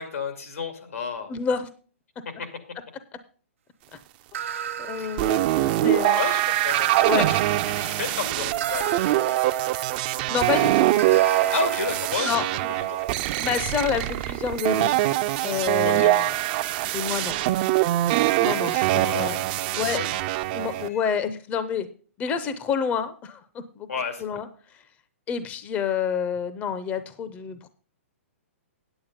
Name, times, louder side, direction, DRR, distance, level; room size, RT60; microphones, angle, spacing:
voice 1, 0.0-1.3 2.4-2.5 5.0-5.2 6.1-9.0 11.5-12.3 15.8-16.1 18.9-19.5 19.9-20.1 20.9-21.0 23.9-24.2, left 5 dB, 85° left, 7 dB, 2.3 m, -32 dB
voice 2, 1.3-1.7 4.8-5.4 5.8-6.2 7.1-7.3 10.3-10.9 12.2-12.7 13.4-15.0 15.4-16.3 16.9-17.4 18.4-19.4 19.7-20.0 20.5-21.9 22.2-23.4 23.8-23.9 24.2-24.5 24.7-24.8 25.3-27.7, left 7 dB, 20° left, 12 dB, 0.6 m, -28 dB
sound 1, 4.3-6.0 6.7-10.4 11.0-14.7, right 8 dB, 70° right, 1.1 m, -36 dB
sound 2, 5.2-20.9, right 15 dB, 40° right, 0.5 m, -23 dB
8.9 x 8.4 x 5.1 m, 0.40 s
hypercardioid pair, 145°, 7 cm